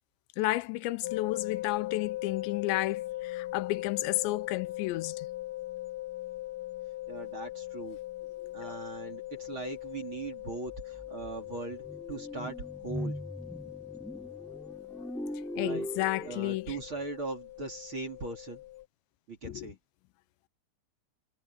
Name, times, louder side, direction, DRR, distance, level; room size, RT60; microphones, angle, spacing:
voice 1, 0.4-5.3 8.4-8.8 15.6-16.8 19.4-19.7, left 18 dB, 90° left, 3.0 m, -32 dB
sound 1, 1.0-18.8, left 16 dB, 55° left, 1.6 m, -40 dB
voice 2, 7.1-8.0 8.5-12.6 12.8-13.2 15.6-15.9 16.2-18.6 19.3-19.8, right 3 dB, 30° right, 3.2 m, -40 dB
sound 2, 10.2-10.3 10.7-16.8, equal, ahead, 6.6 m, -40 dB
omnidirectional pair, 5.0 m